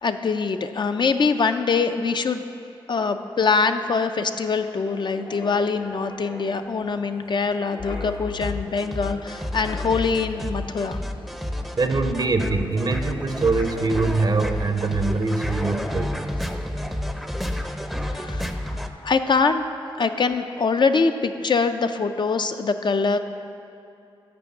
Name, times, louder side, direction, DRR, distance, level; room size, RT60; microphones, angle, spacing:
voice 1, 0.0-2.4 2.9-11.0 18.1-19.6 20.0-23.2, left 4 dB, 50° left, 8 dB, 0.4 m, -23 dB
Wind, 3.1-15.5 15.8-16.1, left 4 dB, 80° left, 1.2 m, -41 dB
sound 1, 8.4-18.9, left 1 dB, ahead, 0.5 m, -30 dB
voice 2, 11.8-16.1, right 3 dB, 45° right, 7 dB, 0.6 m, -23 dB
6.1 x 5.3 x 6.9 m, 2.6 s
cardioid pair, 50°, 10 cm